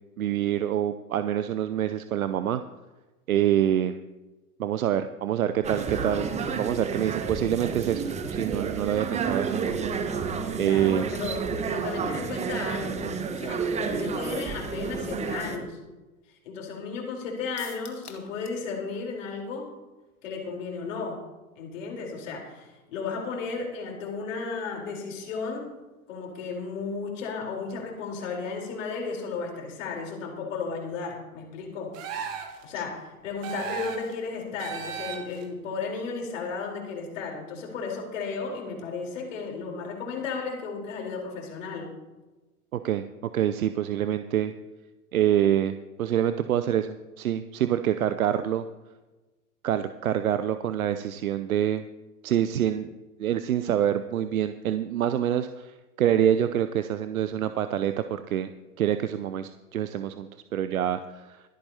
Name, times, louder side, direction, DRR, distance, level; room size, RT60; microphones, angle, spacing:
voice 1, 0.2-2.6 3.3-4.0 4.6-8.0 8.3-10.2 10.6-11.1 42.7-43.0 43.3-44.5 45.1-48.6 49.6-51.8 52.2-58.5 58.8-61.4, right 10 dB, 65° right, 11 dB, 0.7 m, -26 dB
sound 1, 5.6-15.6, right 5 dB, 15° right, 1.1 m, -30 dB
voice 2, 10.6-15.8 16.4-19.7 20.2-21.2 21.6-25.7 26.1-32.0 32.6-41.9, left 4 dB, 55° left, 0 dB, 4.1 m, -34 dB
sound 2, 17.6-18.7 18.9-19.0 19.4-19.5, left 6 dB, 75° left, 1.8 m, -46 dB
sound 3, 31.9-32.6 33.4-34.1 34.6-35.4, right 8 dB, 30° right, 2.2 m, -35 dB
26.0 x 8.7 x 2.9 m, 1.2 s
figure-of-eight pair, 105°, 45 cm